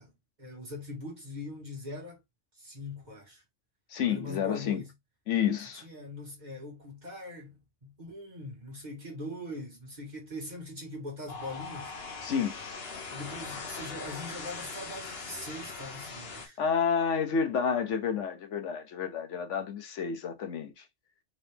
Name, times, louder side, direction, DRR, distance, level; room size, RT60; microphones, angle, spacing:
voice 1, 0.0-2.2 2.6-3.4 4.1-4.9 5.7-11.9 13.1-16.6, left 1 dB, 40° right, 1.8 m, -42 dB
voice 2, 3.9-4.8 5.3-5.8 12.2-12.6 16.6-20.8, left 7 dB, 85° left, 1.2 m, -30 dB
sound 1, 11.3-16.5, left 4 dB, 60° left, 1.1 m, -41 dB
3.9 x 2.8 x 3.4 m
omnidirectional pair, 1.2 m